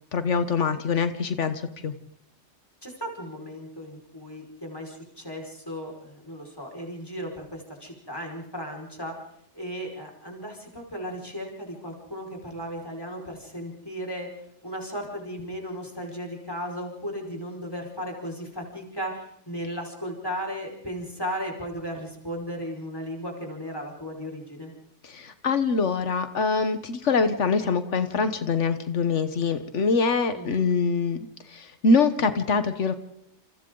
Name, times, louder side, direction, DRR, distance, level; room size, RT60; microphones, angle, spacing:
voice 1, 0.1-1.9 25.0-31.2 31.5-32.9, left 4 dB, 80° left, 10 dB, 1.4 m, -24 dB
voice 2, 2.8-9.2 9.5-14.3 14.6-24.7 30.3-30.7, equal, 20° left, 1 dB, 5.1 m, -35 dB
28.0 x 28.0 x 3.9 m, 0.72 s
omnidirectional pair, 1.2 m